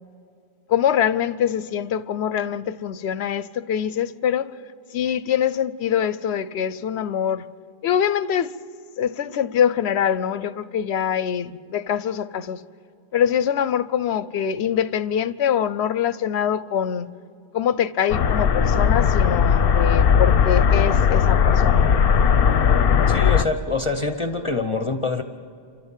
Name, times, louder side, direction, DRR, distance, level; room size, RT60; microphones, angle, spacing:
voice 1, 0.7-4.5 4.9-7.4 7.8-8.5 9.0-12.6 13.1-17.1 17.5-21.9, left 9 dB, 90° left, 0.9 m, -24 dB
sound 1, 18.1-23.4, left 7 dB, 65° left, 0.9 m, -17 dB
voice 2, 23.1-25.2, left 3 dB, 30° left, 0.9 m, -25 dB
29.5 x 13.5 x 7.4 m
omnidirectional pair, 1.1 m